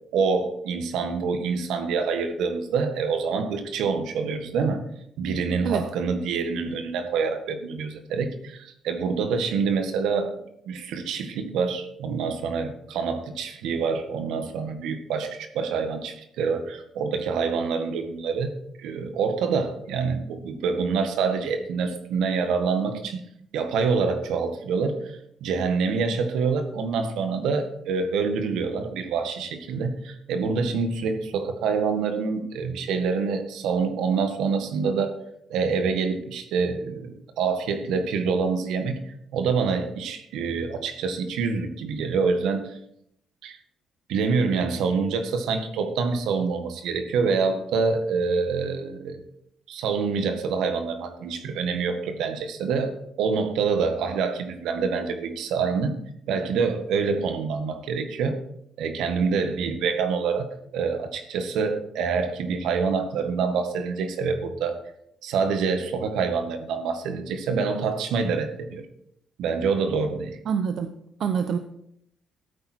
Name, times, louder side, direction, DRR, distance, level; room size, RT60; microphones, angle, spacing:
voice 1, 0.1-4.8 5.2-10.3 10.6-18.5 18.8-23.2 23.5-35.1 35.5-42.8 43.4-43.6 44.1-49.2 49.7-56.0 56.3-58.4 58.8-64.8 65.2-68.9 69.4-70.4, right 5 dB, 85° right, 7 dB, 1.6 m, -26 dB
voice 2, 70.5-70.9 71.2-71.6, right 7 dB, 65° right, 8 dB, 0.7 m, -25 dB
13.0 x 8.9 x 4.4 m, 0.74 s
cardioid pair, 90°, 0 cm